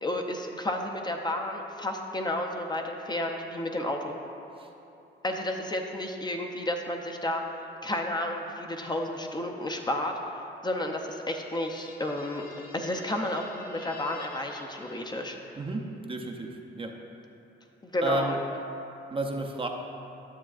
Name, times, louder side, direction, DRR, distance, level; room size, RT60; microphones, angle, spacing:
voice 1, 0.0-4.1 5.2-7.4 7.8-10.1 10.6-12.4 12.7-15.4 17.8-18.4, left 1 dB, 20° left, 3 dB, 0.6 m, -31 dB
sound 1, 11.0-15.8, left 2 dB, 45° left, 1.0 m, -50 dB
voice 2, 15.6-16.9 18.0-18.4 19.1-19.7, right 2 dB, 25° right, 2 dB, 0.6 m, -31 dB
10.0 x 6.8 x 2.4 m, 2.8 s
cardioid pair, 90°, 20 cm